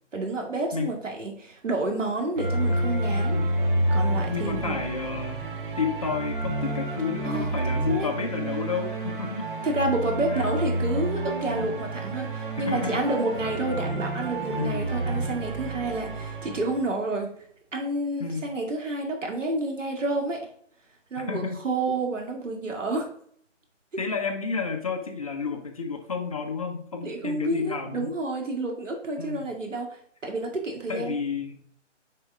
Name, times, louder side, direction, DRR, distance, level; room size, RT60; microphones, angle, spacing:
voice 1, 0.1-3.4 3.9-4.8 7.2-7.5 7.9-8.1 9.6-17.3 17.7-20.4 21.1-23.1 27.0-31.2, right 2 dB, 80° right, 2 dB, 2.4 m, -29 dB
sound 1, 2.4-16.9, right 1 dB, 45° right, 1.3 m, -29 dB
voice 2, 3.3-3.6 4.3-9.5 10.3-10.5 12.6-13.1 14.5-15.1 18.2-18.5 21.2-21.8 24.0-28.1 29.2-29.5 30.9-31.6, left 5 dB, 30° left, 4 dB, 0.7 m, -31 dB
8.6 x 4.9 x 3.6 m, 0.63 s
hypercardioid pair, 165°, 37 cm